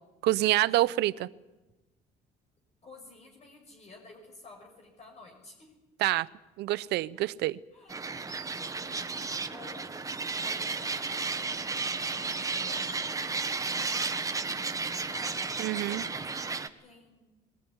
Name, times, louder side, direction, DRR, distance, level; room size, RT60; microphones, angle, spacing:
voice 1, 0.2-1.3 6.0-6.3 6.6-7.6 15.6-16.1, right 16 dB, 80° right, 18 dB, 0.7 m, -27 dB
voice 2, 2.8-5.7 7.7-7.9 8.8-13.6 14.1-15.4 16.0-17.4, left 3 dB, 40° left, 1 dB, 5.8 m, -53 dB
sound 1, 7.9-16.7, right 4 dB, 20° right, 1.3 m, -33 dB
21.5 x 19.0 x 9.7 m, 1.1 s
cardioid pair, 110°, 17 cm